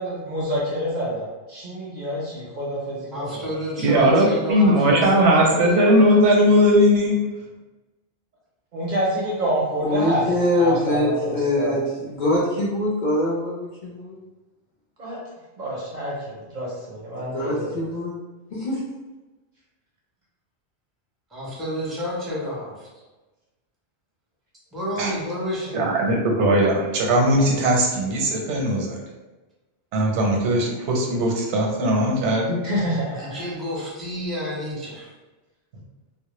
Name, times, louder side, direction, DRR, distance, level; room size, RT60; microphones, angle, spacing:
voice 1, 0.0-3.5 8.7-11.8 15.0-15.2 15.6-17.8 32.6-33.4, equal, 55° right, -5 dB, 0.5 m, -27 dB
voice 2, 3.1-6.2 21.3-22.9 24.7-25.8 33.2-35.1, equal, ahead, -7 dB, 0.5 m, -30 dB
voice 3, 3.8-7.2 25.0-25.1 25.7-29.0 29.9-32.6, equal, 85° right, 0 dB, 0.9 m, -19 dB
voice 4, 9.8-14.2 17.1-18.1 18.5-18.9, left 1 dB, 60° left, -6 dB, 0.5 m, -24 dB
2.1 x 2.0 x 2.9 m, 1.1 s
omnidirectional pair, 1.2 m